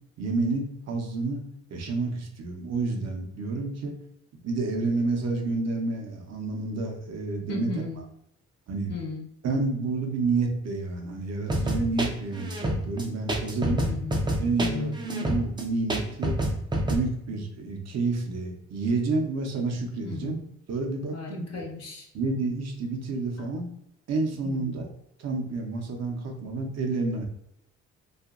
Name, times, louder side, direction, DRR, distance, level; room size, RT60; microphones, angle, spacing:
voice 1, 0.2-4.0 4.4-7.7 8.7-8.9 9.4-13.9 14.4-16.4 16.9-20.4 20.7-21.6 22.1-23.7 24.1-24.9 25.2-27.3, right 3 dB, 60° right, 2 dB, 0.7 m, -29 dB
voice 2, 7.5-8.0 8.9-9.3 13.8-14.2 14.6-14.9 20.0-20.4 21.1-22.1 23.4-23.5 24.4-24.8, left 3 dB, 55° left, 0 dB, 0.9 m, -35 dB
sound 1, 11.5-17.0, right 1 dB, 15° right, 0.4 m, -27 dB
2.8 x 2.5 x 2.4 m, 0.77 s
cardioid pair, 90°, 30 cm